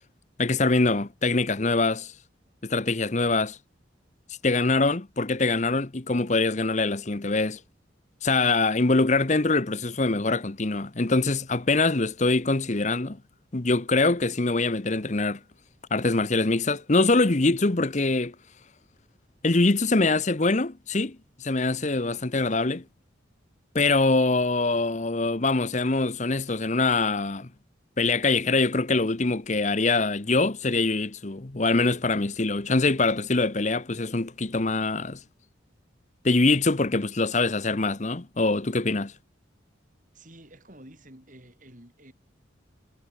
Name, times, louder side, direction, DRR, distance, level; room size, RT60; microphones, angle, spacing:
voice 1, 0.4-2.1 2.6-3.6 4.4-7.6 8.2-13.2 13.5-15.4 15.9-18.3 19.4-22.8 23.7-27.5 28.0-35.2 36.2-39.1, left 3 dB, 35° left, 0.9 m, -24 dB
voice 2, 40.1-42.1, right 1 dB, 40° right, 7.7 m, -50 dB
head